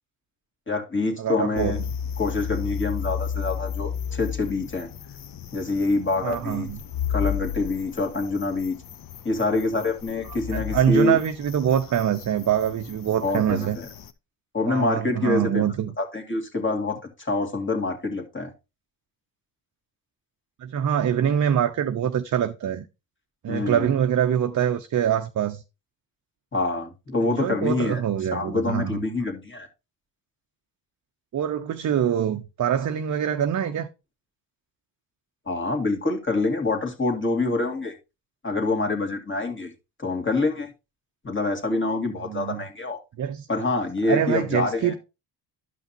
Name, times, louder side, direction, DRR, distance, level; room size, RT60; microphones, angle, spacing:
voice 1, 0.7-1.8 2.2-4.9 5.5-6.7 7.1-8.8 9.2-11.2 13.2-13.9 14.5-15.7 16.0-18.5 23.5-23.9 26.5-28.0 28.3-29.7 35.5-37.9 38.4-39.7 40.0-40.7 41.2-43.0 43.5-44.9, left 3 dB, 25° left, 2.2 m, -26 dB
voice 2, 1.2-1.7 6.2-6.8 10.5-13.8 14.6-15.9 20.6-22.9 23.4-25.6 27.2-29.0 31.3-33.9 42.2-42.6 43.2-43.5 44.1-44.9, right 9 dB, 40° right, 0.7 m, -24 dB
sound 1, 1.6-14.1, left 8 dB, 45° left, 0.7 m, -33 dB
11.5 x 5.6 x 2.8 m
supercardioid pair, 60°, 48 cm